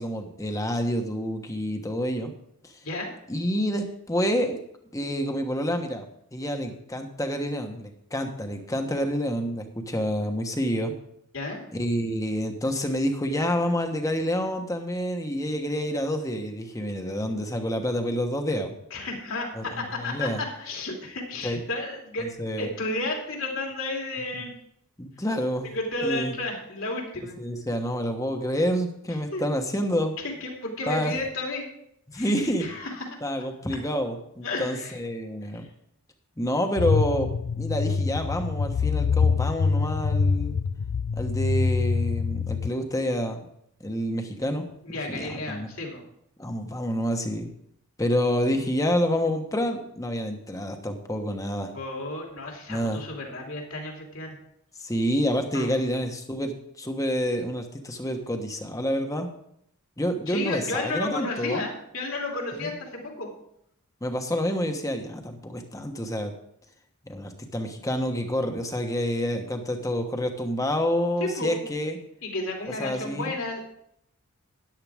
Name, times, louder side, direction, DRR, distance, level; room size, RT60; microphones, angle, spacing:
voice 1, 0.0-2.3 2.6-2.7 3.3-4.6 4.9-6.0 6.3-10.9 11.7-18.8 19.5-19.6 20.0-20.4 21.4-21.6 22.2-22.7 24.3-24.4 25.0-25.7 26.0-26.3 27.4-30.1 30.9-31.1 32.1-32.7 33.2-35.7 36.4-37.3 37.6-40.6 41.2-43.4 43.8-44.6 45.1-45.7 46.4-47.5 48.0-51.7 52.7-53.0 54.8-59.3 60.0-61.6 62.5-62.7 64.0-66.3 67.0-72.0 72.8-73.3, equal, 15° left, 5 dB, 1.2 m, -28 dB
voice 2, 18.9-20.3 20.6-22.3 22.6-24.5 25.7-27.4 29.3-29.4 30.4-31.7 32.1-33.1 34.4-35.0 44.8-46.0 51.7-54.4 55.5-55.7 60.3-63.3 71.2-71.6 72.2-73.6, left 2 dB, 65° left, 0 dB, 2.9 m, -32 dB
sound 1, 36.8-42.7, left 5 dB, 90° left, 0.4 m, -25 dB
13.5 x 10.5 x 3.6 m, 0.72 s
head